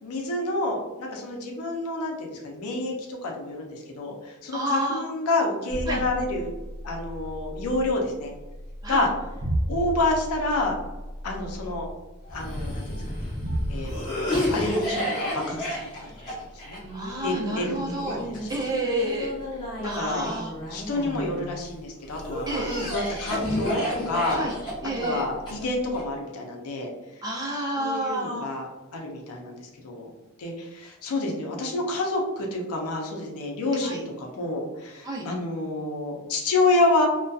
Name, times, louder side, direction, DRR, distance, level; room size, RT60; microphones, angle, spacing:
voice 1, 0.0-6.5 6.8-8.3 8.9-9.1 9.7-10.8 11.2-11.9 12.3-12.8 13.1-13.3 13.7-15.9 16.3-16.8 17.2-18.6 19.8-20.4 20.6-24.4 25.0-26.9 27.8-30.1 30.4-37.1, left 2 dB, 90° left, 0 dB, 0.5 m, -28 dB
voice 2, 4.5-5.0 5.9-6.0 8.8-9.1 15.0-15.1 16.9-18.2 18.5-19.3 19.8-20.5 22.5-22.9 24.3-24.5 24.8-25.2 27.2-28.5 33.8-34.0 35.0-35.3, right 1 dB, 15° right, -3 dB, 0.5 m, -29 dB
sound 1, 5.7-13.9, equal, 80° right, 0.6 m, -34 dB
Cough, 12.3-21.5 22.1-26.0, equal, 20° left, 1.0 m, -31 dB
2.6 x 2.2 x 2.3 m, 1.1 s
head